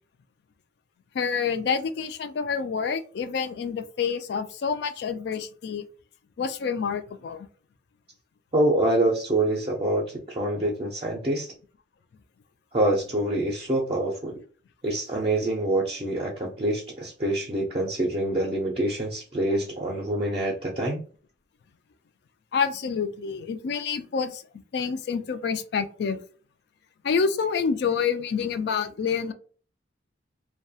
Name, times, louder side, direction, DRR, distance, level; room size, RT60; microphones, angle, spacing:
voice 1, 1.1-5.9 6.4-7.5 22.5-26.2 27.0-29.3, left 6 dB, 60° left, 0.3 m, -28 dB
voice 2, 8.5-11.5 12.7-14.3 14.8-21.0, right 1 dB, 30° right, 0.4 m, -26 dB
2.3 x 2.2 x 2.6 m
head